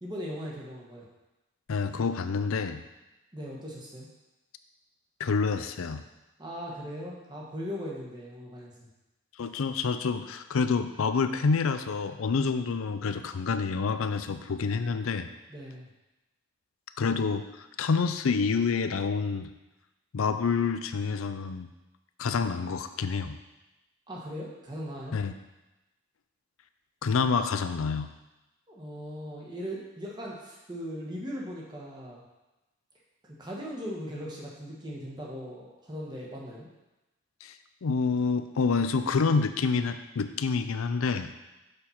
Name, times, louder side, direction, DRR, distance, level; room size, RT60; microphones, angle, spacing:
voice 1, 0.0-1.1 3.3-4.1 6.4-8.9 15.5-15.9 24.1-25.2 28.7-32.2 33.4-36.7, equal, 20° right, -4 dB, 1.3 m, -39 dB
voice 2, 1.7-2.8 5.2-6.0 9.4-15.3 17.0-19.5 20.1-21.7 22.2-23.4 25.1-25.3 27.0-28.1 37.4-37.6 37.8-41.3, left 5 dB, 85° left, 10 dB, 0.5 m, -28 dB
6.8 x 4.3 x 5.7 m, 1.0 s
head